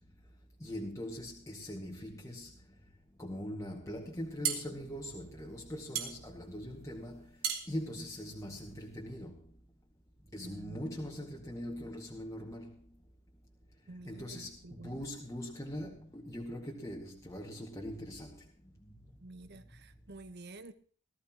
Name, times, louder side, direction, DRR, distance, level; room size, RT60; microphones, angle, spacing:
voice 1, 0.6-2.5 3.2-7.2 7.7-9.4 10.3-12.7 14.1-14.5 14.8-18.3, equal, 15° left, 2.0 m, -41 dB
sound 1, 4.1-9.0, right 8 dB, 85° right, 3.4 m, -39 dB
voice 2, 10.4-10.8 13.9-15.0 19.2-20.7, right 2 dB, 55° right, 1.1 m, -49 dB
19.0 x 14.0 x 3.0 m
head